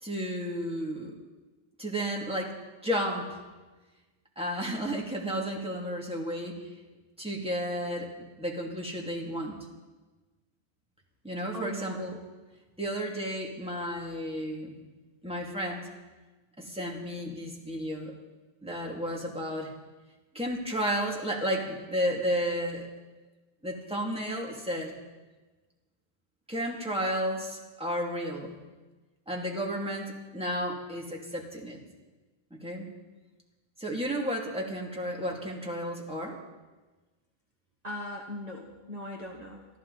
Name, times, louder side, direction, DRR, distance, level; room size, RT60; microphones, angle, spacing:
voice 1, 0.0-1.1 1.8-2.5 2.8-3.4 4.4-6.7 7.2-8.1 8.4-9.6 11.2-12.2 12.8-14.8 15.2-15.9 16.6-18.1 18.6-19.7 20.3-22.9 23.6-25.0 26.5-28.6 29.3-31.8 32.5-32.9 33.8-36.4, equal, 5° right, -1 dB, 2.3 m, -32 dB
voice 2, 11.5-12.1 37.8-39.7, left 1 dB, 40° right, -1 dB, 1.6 m, -39 dB
24.0 x 13.0 x 4.0 m, 1.2 s
omnidirectional pair, 1.1 m